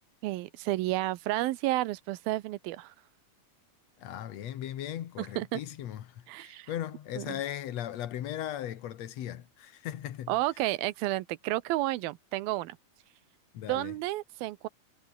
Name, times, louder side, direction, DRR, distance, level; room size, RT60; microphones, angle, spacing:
voice 1, 0.2-2.9 5.2-5.6 6.3-6.7 7.2-7.4 10.3-12.8 13.7-14.7, right 17 dB, 85° right, 2.7 m, -31 dB
voice 2, 4.0-10.4 13.5-14.0, left 11 dB, 60° left, 2.1 m, -38 dB
omnidirectional pair, 4.1 m